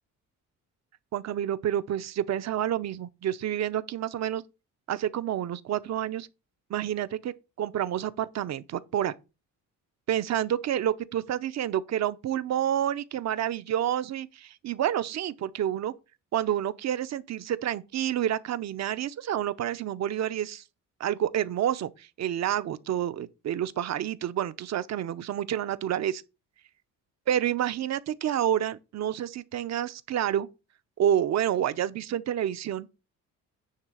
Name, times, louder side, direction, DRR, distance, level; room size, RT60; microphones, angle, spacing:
voice 1, 1.1-4.4 4.9-6.3 6.7-9.1 10.1-15.9 16.3-20.6 21.0-26.2 27.3-30.5 31.0-32.9, right 10 dB, 55° right, 0.7 m, -29 dB
9.7 x 3.3 x 6.2 m
cardioid pair, 105°, 32 cm